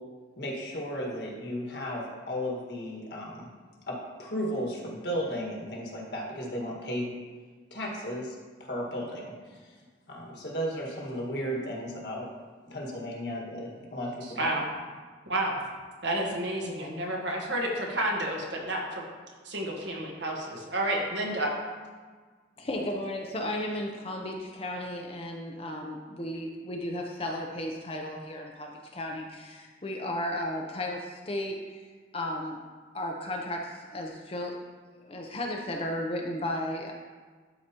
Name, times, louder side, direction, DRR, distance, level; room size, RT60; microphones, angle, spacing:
voice 1, 0.4-3.5 3.9-7.1 7.7-9.7 10.1-12.3 12.6-14.5, equal, 60° left, -2 dB, 1.6 m, -35 dB
voice 2, 16.0-19.0 19.4-21.5, right 1 dB, 70° right, 0 dB, 1.3 m, -30 dB
voice 3, 22.6-31.9 32.1-32.6 32.9-34.5 34.9-36.9, left 1 dB, 30° left, 1 dB, 0.6 m, -34 dB
12.0 x 4.8 x 2.9 m, 1.5 s
head